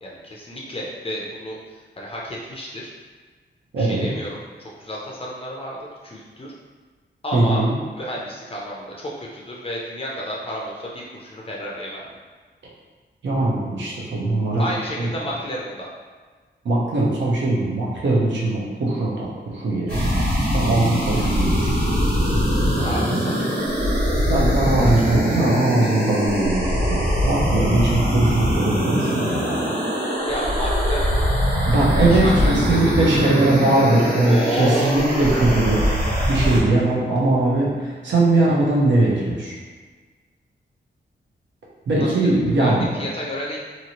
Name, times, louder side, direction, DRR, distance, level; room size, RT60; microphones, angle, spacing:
voice 1, 0.0-2.9 3.8-5.8 6.0-6.5 7.2-7.6 7.9-12.2 14.6-15.9 21.1-21.3 22.5-23.9 24.8-25.1 30.2-33.3 34.2-34.9 42.0-43.6, equal, 30° left, -4 dB, 0.4 m, -31 dB
voice 2, 3.7-4.1 7.3-7.7 13.2-14.6 15.0-15.1 16.6-19.3 19.5-20.2 20.5-21.7 24.3-29.7 31.7-39.5 41.9-42.9, right 2 dB, 75° right, -5 dB, 0.8 m, -20 dB
sound 1, 19.9-36.6, equal, 55° right, 1.3 m, -22 dB
2.9 x 2.7 x 2.9 m, 1.4 s
wide cardioid pair, 120°, 19 cm